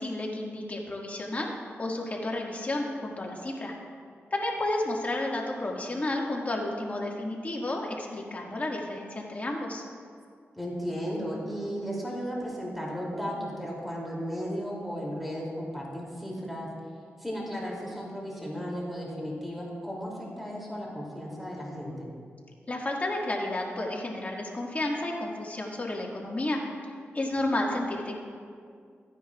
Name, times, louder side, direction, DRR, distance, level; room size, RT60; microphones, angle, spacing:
voice 1, 0.0-1.5 1.8-3.7 4.3-9.8 22.7-26.6 27.1-28.2, left 1 dB, 35° left, -1 dB, 1.9 m, -31 dB
voice 2, 10.5-16.7 17.2-22.1, equal, ahead, -4 dB, 2.8 m, -35 dB
15.5 x 9.9 x 2.4 m, 2.2 s
cardioid pair, 65°, 4 cm